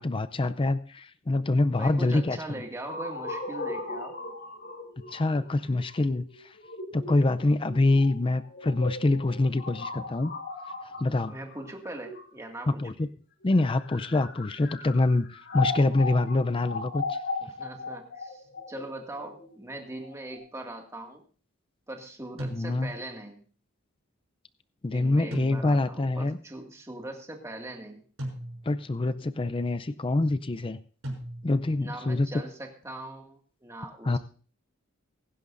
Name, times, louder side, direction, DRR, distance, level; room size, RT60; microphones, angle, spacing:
voice 1, 0.0-2.4 5.1-6.3 6.9-10.3 11.0-11.3 12.7-13.1 13.4-17.2 22.5-22.9 24.8-26.4 28.7-30.8 31.4-32.3 34.1-34.2, left 2 dB, 25° left, 12 dB, 0.5 m, -25 dB
voice 2, 1.8-4.2 11.3-12.9 17.4-21.2 21.9-23.4 24.9-28.0 31.8-34.2, right 1 dB, 15° right, 2 dB, 2.0 m, -41 dB
sound 1, 2.8-12.7 13.4-20.4, left 3 dB, 60° left, 5.1 m, -37 dB
sound 2, 22.4-23.2 25.3-26.1 28.2-28.9 31.0-31.8, equal, 80° right, 6.2 m, -38 dB
22.0 x 11.0 x 2.6 m, 0.41 s
head